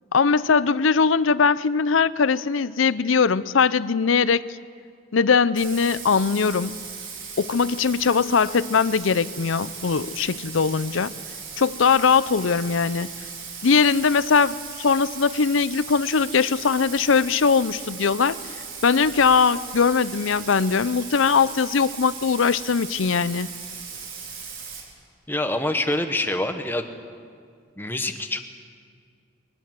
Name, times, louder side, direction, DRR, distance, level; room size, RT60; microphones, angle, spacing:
voice 1, 0.1-4.4 5.1-6.8 7.4-11.1 11.6-13.1 13.6-18.4 18.8-23.5, left 5 dB, 75° left, 17 dB, 0.6 m, -20 dB
Bathtub (filling or washing), 5.5-24.8, right 6 dB, 75° right, 4.6 m, -38 dB
voice 2, 25.3-26.9 27.8-28.4, left 1 dB, 10° left, 6 dB, 1.2 m, -25 dB
22.0 x 20.0 x 7.7 m, 2.1 s
head